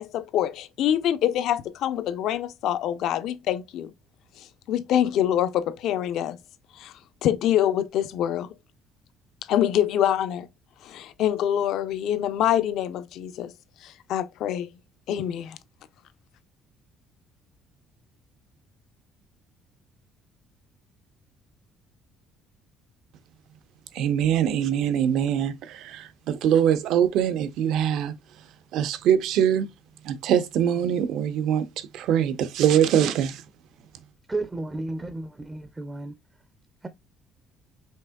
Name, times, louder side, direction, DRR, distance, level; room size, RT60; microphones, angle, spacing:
voice 1, 0.0-3.9 4.4-6.4 6.7-6.9 7.2-8.5 9.5-10.5 10.8-13.5 13.8-14.7 15.1-15.6, left 11 dB, 65° left, 0.5 m, -25 dB
voice 2, 23.9-28.1 28.7-29.7 30.0-33.4, right 9 dB, 70° right, 0.6 m, -23 dB
voice 3, 34.3-36.1, right 2 dB, 15° right, 0.4 m, -32 dB
5.4 x 3.5 x 2.2 m
cardioid pair, 145°, 0 cm